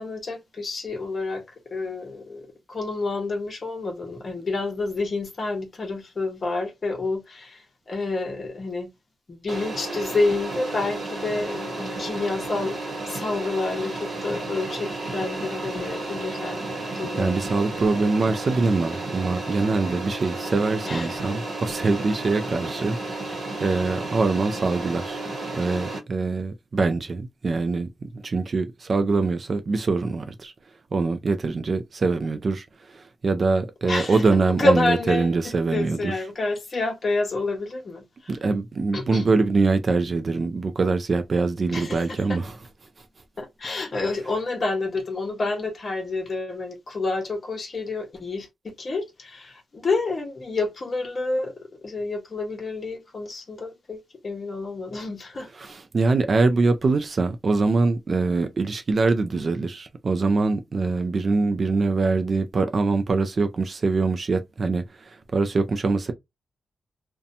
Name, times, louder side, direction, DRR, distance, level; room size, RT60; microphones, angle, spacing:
voice 1, 0.0-8.9 9.3-17.4 20.8-21.5 23.6-23.8 33.8-35.3 35.7-38.4 38.9-39.3 41.7-42.4 43.4-55.5, left 3 dB, 35° left, 0.8 m, -29 dB
sound 1, 9.5-26.0, right 2 dB, 50° right, 0.9 m, -32 dB
voice 2, 17.2-23.0 23.6-25.2 25.5-30.5 30.9-36.1 38.3-42.5 55.6-66.1, right 3 dB, 35° right, 0.3 m, -23 dB
2.6 x 2.1 x 2.6 m
wide cardioid pair, 165°, 0 cm